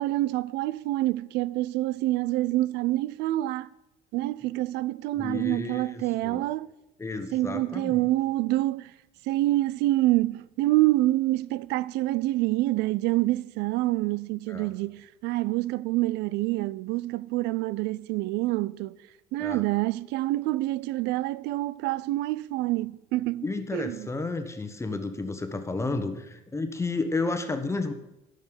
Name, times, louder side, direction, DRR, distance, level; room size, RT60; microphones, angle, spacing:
voice 1, 0.0-3.7 4.1-6.7 7.3-8.9 9.2-19.0 19.3-24.1, right 17 dB, 90° right, 0.4 m, -27 dB
voice 2, 5.2-6.4 7.0-8.1 14.5-14.7 19.4-19.6 23.4-27.9, left 3 dB, 15° left, 1.2 m, -32 dB
10.5 x 6.5 x 8.8 m
cardioid pair, 110°, 17 cm